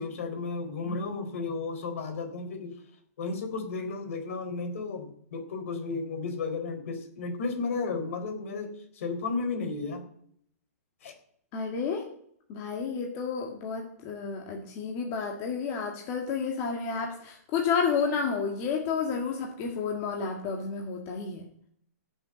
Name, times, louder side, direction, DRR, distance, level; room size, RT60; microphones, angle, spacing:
voice 1, 0.0-2.8 3.2-10.0 11.0-11.1, left 4 dB, 55° left, 7 dB, 3.8 m, -33 dB
voice 2, 0.8-1.3 11.5-12.1 12.5-21.4, left 5 dB, 25° left, 1 dB, 1.8 m, -31 dB
17.0 x 6.8 x 8.7 m, 0.68 s
hypercardioid pair, 170°, 9 cm